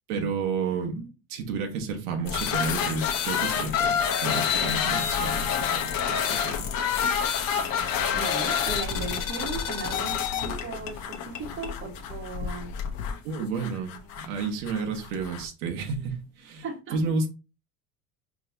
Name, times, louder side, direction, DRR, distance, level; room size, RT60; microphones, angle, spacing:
voice 1, 0.1-1.0 1.3-6.7 13.2-16.6 16.9-17.3, right 4 dB, 90° right, 1.1 m, -31 dB
sound 1, 2.2-15.5, left 7 dB, 50° left, 0.9 m, -28 dB
Wind instrument woodwind instrument, 4.9-8.6, right 3 dB, 85° left, 1.2 m, -49 dB
voice 2, 7.8-12.7 16.6-17.0, right 4 dB, 30° right, 1.3 m, -37 dB
4.7 x 3.1 x 2.6 m
supercardioid pair, 110°, 42 cm